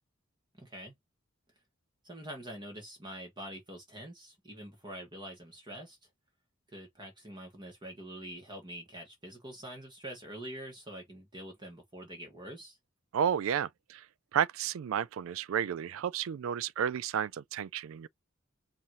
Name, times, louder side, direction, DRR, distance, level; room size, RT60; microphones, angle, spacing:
voice 1, 0.5-0.9 2.0-6.0 6.7-12.8, right 1 dB, 25° right, 1.5 m, -45 dB
voice 2, 13.1-14.0 14.3-18.1, right 8 dB, 80° right, 0.3 m, -32 dB
5.6 x 2.6 x 3.0 m
head